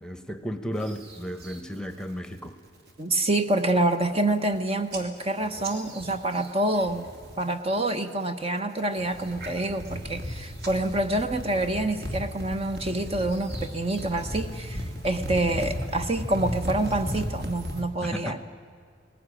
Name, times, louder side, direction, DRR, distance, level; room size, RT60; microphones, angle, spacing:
voice 1, 0.0-2.5 18.0-18.4, equal, 5° left, 10 dB, 1.1 m, -34 dB
sound 1, 0.8-1.6 2.0-2.4 2.8-3.1 3.6-3.7 3.9-4.6 4.9-7.5 7.7-8.3 8.8-17.8, equal, 55° right, 2.8 m, -36 dB
voice 2, 3.0-7.1 7.4-18.4, right 2 dB, 30° right, 8 dB, 1.0 m, -27 dB
20.0 x 17.5 x 9.9 m, 2.2 s
head